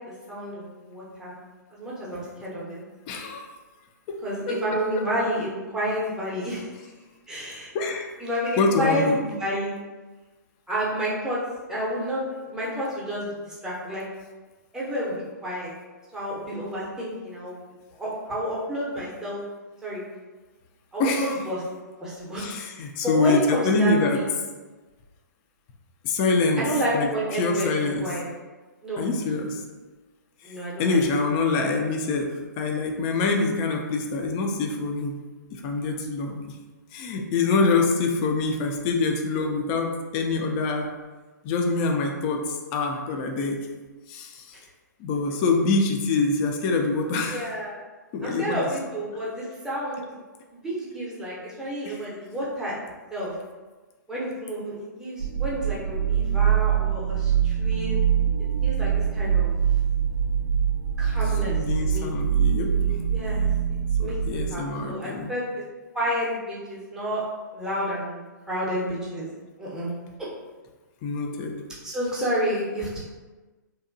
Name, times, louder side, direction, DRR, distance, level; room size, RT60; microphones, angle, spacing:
voice 1, 0.3-1.3 1.7-2.8 4.2-6.7 7.3-7.7 8.2-9.8 10.7-11.4 11.7-14.0 14.7-15.7 16.1-17.6 18.0-19.4 19.8-20.0 20.9-21.6 22.0-22.5 23.0-24.2 26.6-27.7 28.0-28.3 28.8-29.0 30.4-31.0 44.5-44.7 47.3-47.8 48.2-50.1 50.5-52.8 53.1-53.3 54.1-58.0 58.4-59.5 61.0-62.1 62.6-63.4 64.0-65.6 65.9-67.2 67.5-69.3 69.6-69.9 71.8-73.0, equal, 5° right, -7 dB, 0.6 m, -30 dB
voice 2, 3.1-3.4 4.1-4.2 4.5-4.8 7.7-8.1 8.6-9.2 21.0-21.4 22.4-24.2 26.0-26.6 26.9-28.1 29.0-29.6 30.4-35.2 35.5-36.6 36.9-40.9 41.4-43.7 44.1-44.6 45.0-47.5 48.1-48.7 51.8-52.0 61.5-63.0 64.0-65.3 71.0-71.6, left 3 dB, 30° left, 2 dB, 0.3 m, -25 dB
sound 1, 55.2-64.6, right 8 dB, 75° right, 0.5 m, -24 dB
2.8 x 2.2 x 2.5 m, 1.3 s
figure-of-eight pair, 125°, 10 cm